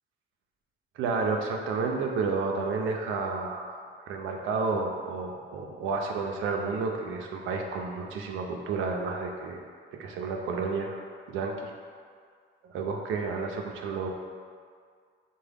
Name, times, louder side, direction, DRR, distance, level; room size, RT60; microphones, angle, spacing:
voice 1, 1.0-3.8 4.1-9.6 10.0-11.7 12.6-14.1, right 4 dB, 80° right, 2 dB, 0.4 m, -31 dB
3.6 x 2.2 x 3.4 m, 2.1 s
cardioid pair, 90°, 20 cm